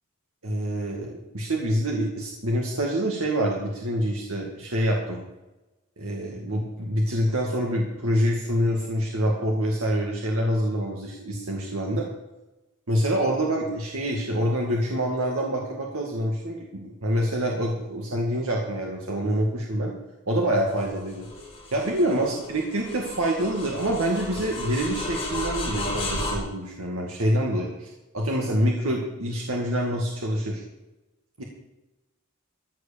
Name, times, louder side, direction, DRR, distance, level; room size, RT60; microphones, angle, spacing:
voice 1, 0.4-5.2 6.0-12.1 12.9-19.9 20.3-21.3 21.7-30.6 31.4-31.5, equal, 75° right, -1 dB, 2.1 m, -26 dB
sound 1, 20.7-26.4, left 1 dB, 25° left, 6.0 m, -33 dB
14.5 x 7.8 x 6.9 m, 1.0 s
head